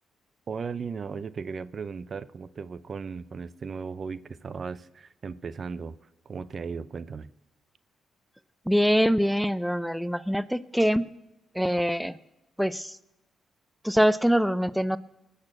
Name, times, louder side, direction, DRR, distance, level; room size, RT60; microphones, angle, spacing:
voice 1, 0.5-5.9 6.3-7.3, right 5 dB, 50° right, 0.6 m, -36 dB
voice 2, 8.7-11.0 11.5-12.1 12.6-13.0 13.8-15.0, equal, ahead, 0.6 m, -24 dB
19.5 x 6.6 x 7.6 m
supercardioid pair, 55°, 0 cm